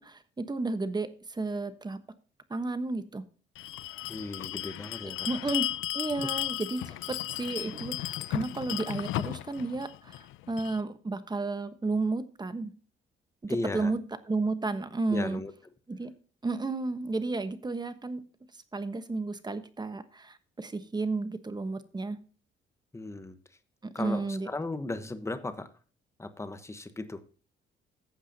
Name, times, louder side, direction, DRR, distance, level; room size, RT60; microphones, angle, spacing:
voice 1, 0.0-2.0 2.5-3.2 5.3-5.7 5.9-12.7 13.4-14.0 14.3-15.4 15.9-16.1 16.4-18.2 18.7-22.2 23.8-24.5, right 3 dB, 20° right, 1.2 m, -32 dB
Bell, 3.5-10.8, left 15 dB, 90° left, 0.5 m, -35 dB
voice 2, 4.1-5.3 6.2-6.3 13.5-13.9 15.1-15.5 22.9-23.4 23.9-25.7 26.2-27.2, left 2 dB, 15° left, 1.1 m, -36 dB
14.5 x 8.2 x 2.8 m
cardioid pair, 90°, 20 cm